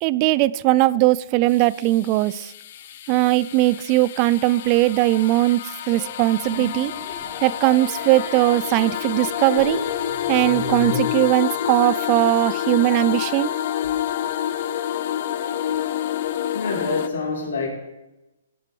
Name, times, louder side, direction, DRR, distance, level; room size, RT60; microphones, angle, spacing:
voice 1, 0.0-2.5 3.1-6.9 7.4-9.8 10.3-13.5, right 17 dB, 35° right, 0.3 m, -19 dB
sound 1, 1.5-17.1, left 10 dB, 50° left, 0.6 m, -28 dB
sound 2, 5.9-11.0, left 3 dB, 25° left, 3.1 m, -36 dB
voice 2, 16.5-17.7, left 4 dB, 70° left, 3.7 m, -26 dB
16.5 x 8.1 x 3.3 m
hypercardioid pair, 135°, 0 cm